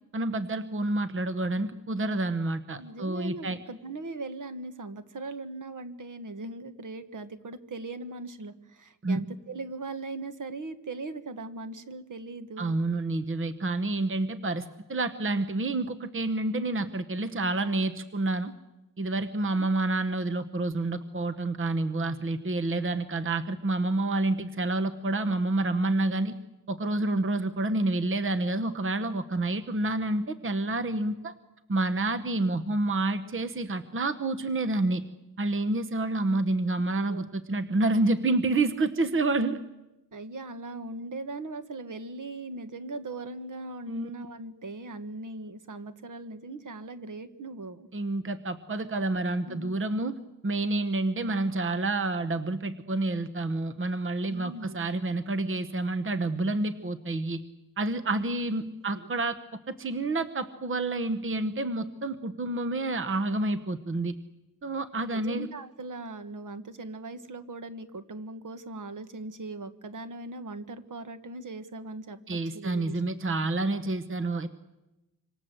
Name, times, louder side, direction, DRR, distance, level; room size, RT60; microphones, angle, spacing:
voice 1, 0.1-3.6 9.0-9.2 12.6-18.5 19.0-26.4 26.7-31.3 31.7-35.0 35.4-39.6 43.9-44.1 47.9-50.1 50.4-57.4 57.8-59.4 59.7-64.1 64.6-65.5 72.3-74.5, right 2 dB, 40° right, 11 dB, 1.0 m, -28 dB
voice 2, 2.8-12.7 19.6-19.7 36.9-37.3 39.0-39.2 40.1-47.9 49.5-49.8 54.3-54.9 58.9-59.1 65.1-73.0, right 2 dB, 65° right, 10 dB, 1.7 m, -39 dB
26.5 x 26.0 x 7.8 m, 1.0 s
wide cardioid pair, 160°, 33 cm